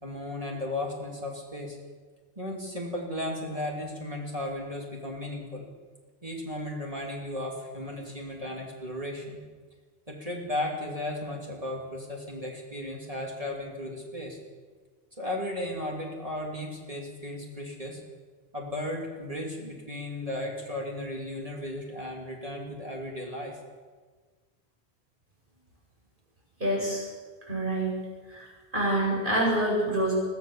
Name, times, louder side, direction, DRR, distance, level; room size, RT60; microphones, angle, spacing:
voice 1, 0.0-1.8 2.4-5.7 6.2-9.4 10.1-14.4 15.2-18.0 18.5-23.6, left 1 dB, 35° right, -1 dB, 3.2 m, -35 dB
voice 2, 26.6-27.0 27.5-27.9 28.3-30.1, right 1 dB, 50° right, -3 dB, 8.3 m, -27 dB
23.0 x 15.5 x 7.4 m, 1.5 s
omnidirectional pair, 1.1 m